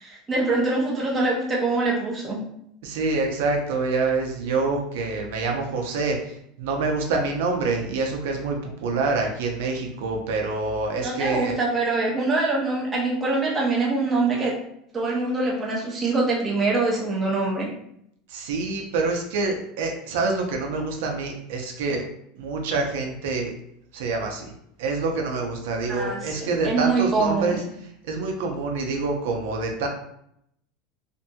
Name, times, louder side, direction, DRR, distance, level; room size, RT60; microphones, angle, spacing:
voice 1, 0.0-2.4 11.0-14.6 14.9-17.7 25.9-27.6, right 3 dB, 15° right, -4 dB, 0.5 m, -24 dB
voice 2, 2.8-11.5 18.3-22.0 22.4-23.5 23.9-24.5 24.8-27.6 28.0-29.9, right 3 dB, 75° right, 2 dB, 0.5 m, -26 dB
2.7 x 2.6 x 2.2 m, 0.74 s
supercardioid pair, 180°, 0 cm